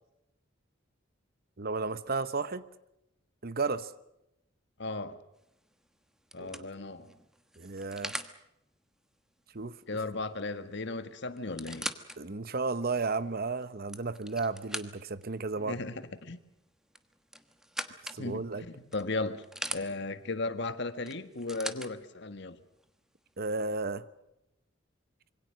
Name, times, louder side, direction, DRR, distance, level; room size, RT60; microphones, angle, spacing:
voice 1, 1.6-2.7 3.4-3.9 6.4-6.7 7.6-8.2 9.5-9.8 12.2-15.8 18.1-18.6 23.4-24.1, right 3 dB, 50° right, 0.9 m, -33 dB
voice 2, 4.8-5.2 6.3-7.1 9.9-11.9 15.6-16.4 18.2-19.4 19.7-22.6, left 3 dB, 60° left, 1.6 m, -36 dB
sound 1, 5.4-5.7 6.3-8.4 10.4-10.5 10.8-10.9 11.4-12.2 12.8-12.9 13.6-15.2 16.9-18.2 18.9-19.8 21.1-21.9 22.8-22.9, right 1 dB, 5° right, 1.2 m, -40 dB
26.5 x 23.5 x 6.6 m
head